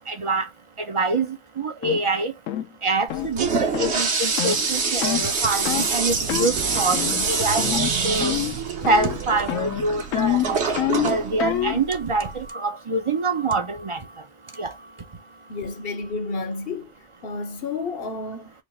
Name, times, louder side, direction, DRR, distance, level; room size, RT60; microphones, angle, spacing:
voice 1, 0.1-0.5 0.8-2.3 2.8-7.0 7.3-8.4 8.8-10.6 11.0-14.0 14.6-14.7, right 3 dB, 35° right, 0.6 m, -25 dB
sound 1, 1.8-2.0 2.5-2.7 3.1-3.3 3.7-3.9 4.4-4.6 5.0-5.3 5.7-5.9 6.3-6.5 6.9-7.3 7.6-7.9 8.2-8.6 8.8-9.2 9.5-11.8, left 12 dB, 75° left, 1.0 m, -26 dB
Toilet flush, 3.1-12.5, right 4 dB, 55° right, 1.3 m, -26 dB
sound 2, 6.1-10.4, right 9 dB, 85° right, 1.2 m, -35 dB
voice 2, 15.5-16.9 17.2-18.5, left 3 dB, 50° left, 0.9 m, -31 dB
4.5 x 2.5 x 4.2 m
omnidirectional pair, 1.4 m